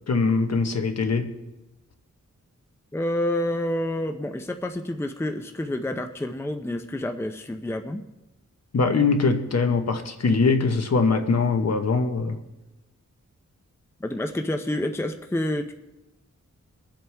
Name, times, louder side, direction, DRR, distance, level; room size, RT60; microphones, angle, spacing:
voice 1, 0.1-1.3 8.7-12.4, left 4 dB, 60° left, 6 dB, 1.1 m, -22 dB
voice 2, 2.9-8.0 14.0-15.7, left 1 dB, 10° left, 5 dB, 0.6 m, -28 dB
23.0 x 7.7 x 3.4 m, 1.0 s
wide cardioid pair, 110°, 29 cm